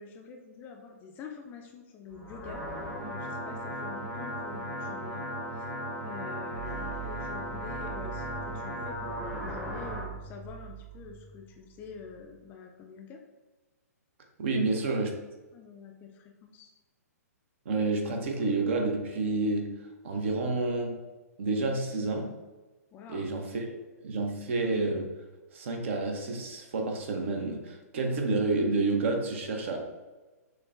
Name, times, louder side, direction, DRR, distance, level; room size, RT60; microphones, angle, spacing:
voice 1, 0.0-2.6 3.0-5.3 5.5-5.8 6.0-13.2 14.5-14.7 15.5-16.7 22.9-23.3, left 5 dB, 20° left, 2 dB, 0.4 m, -46 dB
sound 1, 2.1-10.1, equal, 5° right, 0.7 m, -37 dB
sound 2, 6.5-12.5, right 9 dB, 75° right, 1.1 m, -44 dB
voice 2, 14.4-15.1 17.7-19.7 20.0-21.0 21.4-22.3 23.1-23.7 24.0-25.1 25.5-29.8, right 3 dB, 50° right, 3 dB, 0.7 m, -29 dB
6.3 x 2.2 x 2.5 m, 1.2 s
figure-of-eight pair, 120°, 9 cm